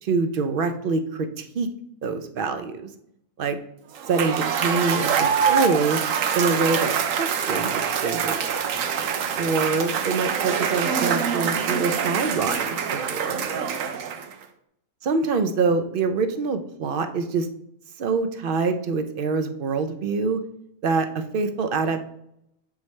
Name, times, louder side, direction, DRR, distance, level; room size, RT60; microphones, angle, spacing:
voice 1, 0.0-1.7 2.0-2.9 3.4-3.6 4.1-6.0 6.3-8.5 9.4-13.5 15.0-17.5 18.0-20.4 20.8-22.0, right 4 dB, 55° right, 8 dB, 0.6 m, -25 dB
Cheering / Applause / Crowd, 4.0-14.4, right 7 dB, 75° right, 1.0 m, -25 dB
7.3 x 4.8 x 3.2 m, 0.76 s
omnidirectional pair, 1.4 m